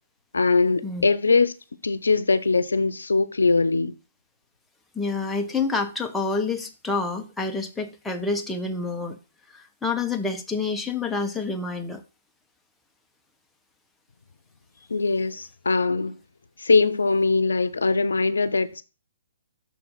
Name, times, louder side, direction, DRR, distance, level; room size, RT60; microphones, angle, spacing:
voice 1, 0.3-1.5 1.8-3.9 14.9-16.2 16.6-18.8, left 4 dB, 80° left, 0.6 m, -21 dB
voice 2, 4.9-9.2 9.5-12.0, left 4 dB, 5° left, 0.8 m, -28 dB
6.4 x 4.3 x 5.4 m
hypercardioid pair, 135°, 0 cm